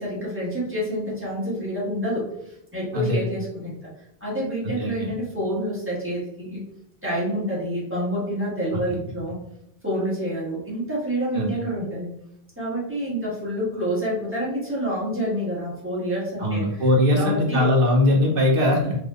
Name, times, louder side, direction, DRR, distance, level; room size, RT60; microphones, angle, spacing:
voice 1, 0.0-3.9 4.2-6.6 7.0-9.4 9.8-12.1 12.6-16.8 17.1-17.7, equal, 10° right, -8 dB, 1.3 m, -28 dB
voice 2, 4.6-5.1 11.3-11.5 16.4-19.0, left 1 dB, 60° right, -1 dB, 0.9 m, -20 dB
3.3 x 2.8 x 2.3 m, 0.79 s
omnidirectional pair, 1.1 m